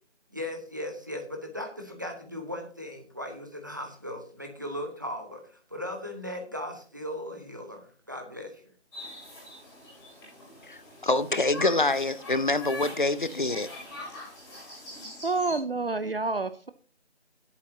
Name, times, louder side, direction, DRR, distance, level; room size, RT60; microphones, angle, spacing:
voice 1, 0.3-8.6, left 1 dB, 15° right, 1.0 m, -37 dB
sound 1, 8.9-15.6, left 2 dB, 15° left, 6.8 m, -43 dB
voice 2, 10.7-13.7, left 2 dB, 45° left, 0.7 m, -26 dB
voice 3, 15.2-16.7, right 3 dB, 55° right, 0.7 m, -28 dB
17.5 x 8.3 x 2.8 m
figure-of-eight pair, 170°, 34 cm